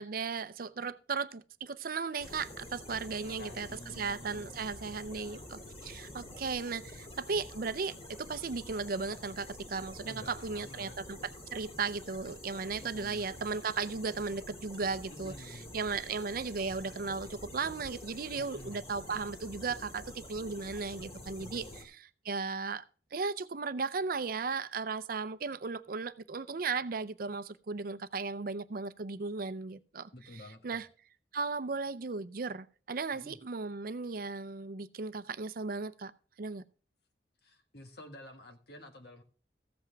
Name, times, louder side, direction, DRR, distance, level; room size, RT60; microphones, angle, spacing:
voice 1, 0.0-3.7 4.0-11.2 11.5-21.7 22.2-22.8 23.1-30.9 31.3-36.1 36.4-36.6, right 4 dB, 55° right, 0.6 m, -36 dB
sound 1, 2.2-21.8, left 1 dB, 35° left, 2.5 m, -48 dB
voice 2, 3.2-5.5 10.0-11.0 12.8-13.3 15.1-15.8 18.4-18.8 21.4-21.8 30.1-30.8 33.1-33.4 37.4-39.2, left 1 dB, 65° left, 1.7 m, -51 dB
14.5 x 7.9 x 3.4 m
head